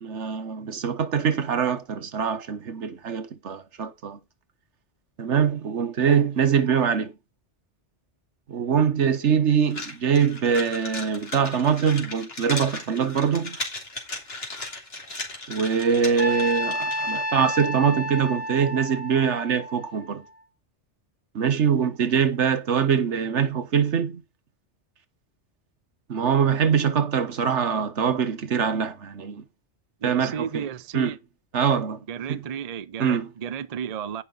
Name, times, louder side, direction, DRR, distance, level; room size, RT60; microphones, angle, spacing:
voice 1, 0.0-4.2 5.2-7.1 8.5-13.6 15.5-20.2 21.3-24.2 26.1-29.4 30.0-30.7 30.9-31.1 31.5-32.0 32.3-32.4 33.0-33.3, right 7 dB, 75° right, 1.4 m, -23 dB
sound 1, 9.7-17.2, left 2 dB, 55° left, 2.9 m, -36 dB
Trumpet, 16.2-20.4, equal, 10° left, 1.8 m, -30 dB
voice 2, 30.0-31.2 32.1-34.2, right 8 dB, 40° right, 0.6 m, -33 dB
16.0 x 5.6 x 3.9 m
omnidirectional pair, 1.2 m